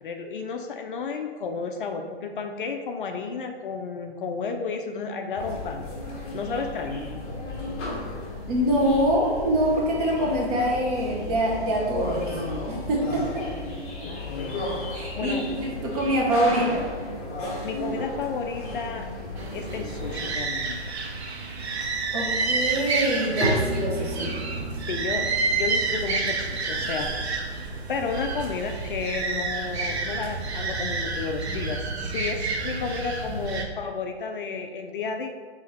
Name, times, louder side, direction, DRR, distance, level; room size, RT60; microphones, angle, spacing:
voice 1, 0.0-5.9 6.3-7.1 14.0-14.7 15.1-15.5 17.6-19.1 19.5-20.8 24.9-27.1 27.9-35.3, left 5 dB, 50° left, 5 dB, 0.4 m, -32 dB
sound 1, 5.3-20.3, left 2 dB, 20° left, 1.2 m, -34 dB
voice 2, 8.5-12.4 12.7-13.5 14.9-16.8 22.1-24.4, right 1 dB, 35° right, -2 dB, 1.1 m, -25 dB
sound 2, 19.4-33.7, right 4 dB, 75° right, 0.8 m, -29 dB
Bowed string instrument, 23.4-29.0, equal, ahead, 0.7 m, -33 dB
3.7 x 2.9 x 4.0 m, 1.5 s
hypercardioid pair, 135°, 33 cm